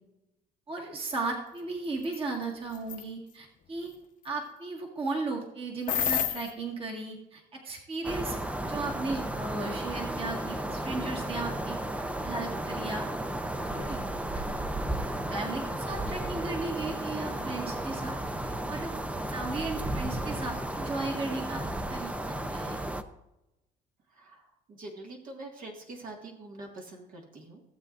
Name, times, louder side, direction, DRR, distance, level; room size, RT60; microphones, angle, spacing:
voice 1, 0.7-3.9 4.2-8.4 8.6-13.1 13.6-14.4 15.0-18.9 19.3-21.6 21.9-22.8, right 3 dB, 35° right, 0 dB, 1.8 m, -36 dB
sound 1, 2.0-2.2 2.7-3.0 5.9-6.5, left 9 dB, 50° left, 1.0 m, -28 dB
sound 2, 8.0-23.0, right 1 dB, 5° right, 0.6 m, -34 dB
voice 2, 24.1-27.6, right 2 dB, 55° right, 0 dB, 1.9 m, -45 dB
16.5 x 7.8 x 2.5 m, 0.95 s
cardioid pair, 110°, 17 cm